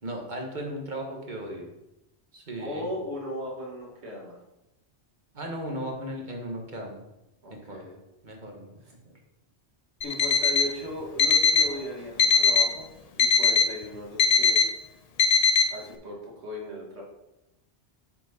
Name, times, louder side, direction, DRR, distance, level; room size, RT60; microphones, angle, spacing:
voice 1, 0.0-1.7 2.3-2.9 5.3-7.0 7.5-7.8 8.2-8.7, right 1 dB, 45° right, 1 dB, 1.4 m, -36 dB
voice 2, 2.6-4.4 7.4-8.0 8.8-8.9 10.0-12.9 13.1-14.7 15.7-17.0, left 1 dB, 75° right, -2 dB, 2.0 m, -37 dB
Alarm, 10.0-10.7 11.2-11.7 12.2-12.7 13.2-13.7 14.2-14.7 15.2-15.7, left 5 dB, 50° left, 0.5 m, -20 dB
8.6 x 4.5 x 4.1 m, 0.94 s
omnidirectional pair, 1.1 m